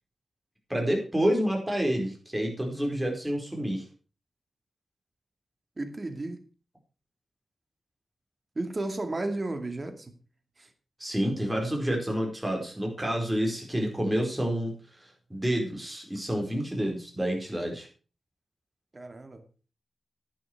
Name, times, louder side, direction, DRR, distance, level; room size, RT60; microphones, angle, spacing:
voice 1, 0.7-3.8 11.0-14.7 15.0-17.9, equal, 10° right, 1 dB, 4.7 m, -29 dB
voice 2, 5.8-6.4 8.6-10.1 10.6-10.7 18.9-19.4, right 2 dB, 35° right, 7 dB, 2.3 m, -33 dB
11.0 x 11.0 x 4.7 m, 0.36 s
wide cardioid pair, 95°, 0 cm